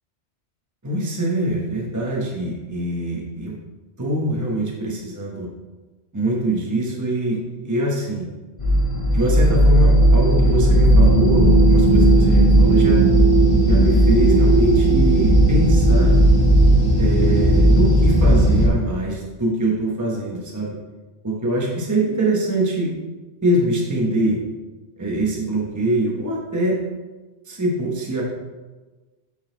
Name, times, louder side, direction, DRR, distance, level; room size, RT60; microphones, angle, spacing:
voice 1, 0.8-3.5 4.0-5.5 6.1-8.3 9.1-13.0 13.6-16.1 17.0-20.8 21.2-22.9 23.4-24.4 25.0-26.8 27.5-28.2, right 1 dB, 15° right, -3 dB, 1.1 m, -23 dB
sound 1, 8.6-18.7, right 1 dB, 30° left, 1.2 m, -15 dB
8.5 x 4.1 x 3.9 m, 1.2 s
omnidirectional pair, 1.2 m